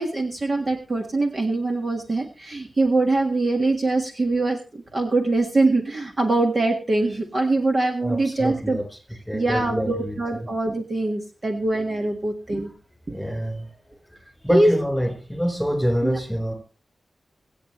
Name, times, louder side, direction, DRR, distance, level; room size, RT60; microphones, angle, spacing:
voice 1, 0.0-8.8 9.1-12.7 14.5-14.7 16.0-16.2, right 2 dB, 35° right, 3 dB, 1.7 m, -23 dB
voice 2, 8.0-8.8 9.3-10.5 13.1-13.7 14.4-16.5, equal, ahead, 5 dB, 4.3 m, -26 dB
24.5 x 8.2 x 3.2 m, 0.35 s
wide cardioid pair, 165°, 0 cm